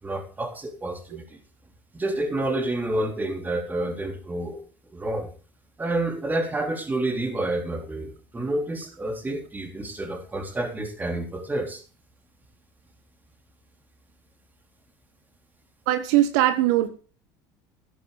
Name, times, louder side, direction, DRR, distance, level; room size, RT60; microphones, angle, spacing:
voice 1, 0.0-1.4 1.9-4.6 4.9-5.3 5.8-11.8, right 1 dB, 15° right, 3 dB, 3.6 m, -29 dB
voice 2, 15.9-16.9, right 13 dB, 75° right, 9 dB, 1.3 m, -20 dB
14.0 x 10.0 x 4.0 m, 0.37 s
supercardioid pair, 100°, 10 cm